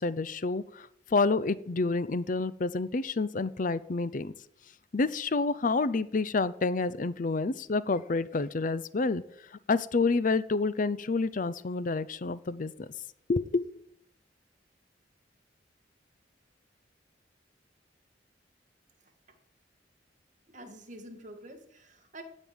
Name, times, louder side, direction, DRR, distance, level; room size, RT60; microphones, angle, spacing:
voice 1, 0.0-4.3 4.9-9.2 9.5-12.9 13.3-13.6, left 3 dB, 45° left, 16 dB, 0.6 m, -29 dB
voice 2, 20.5-22.2, right 1 dB, 45° right, 5 dB, 1.9 m, -47 dB
15.5 x 5.3 x 9.5 m, 0.71 s
head